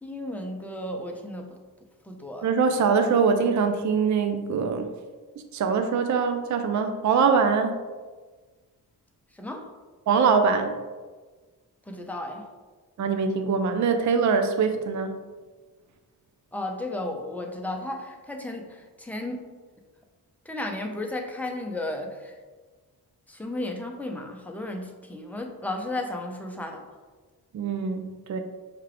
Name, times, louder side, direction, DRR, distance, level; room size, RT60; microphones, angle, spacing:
voice 1, 0.0-1.6 2.0-2.5 9.3-9.7 11.9-12.4 16.5-19.5 20.5-22.3 23.3-26.9, left 1 dB, 5° left, 2 dB, 0.5 m, -34 dB
voice 2, 2.4-4.9 5.5-7.8 10.1-10.8 13.0-15.2 27.5-28.0 28.3-28.4, right 5 dB, 50° right, 7 dB, 0.5 m, -23 dB
5.8 x 2.4 x 3.3 m, 1.4 s
cardioid pair, 80°, 38 cm